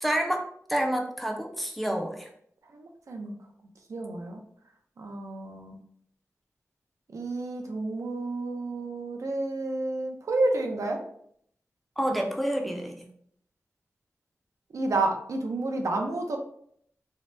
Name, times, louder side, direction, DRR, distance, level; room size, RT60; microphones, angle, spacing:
voice 1, 0.0-2.3 12.0-13.1, right 1 dB, ahead, 2 dB, 0.4 m, -29 dB
voice 2, 2.7-3.3 3.9-4.4 5.0-5.8 7.1-11.0 14.7-16.4, right 2 dB, 80° right, 3 dB, 0.5 m, -30 dB
2.7 x 2.1 x 3.2 m, 0.67 s
wide cardioid pair, 100°, 5 cm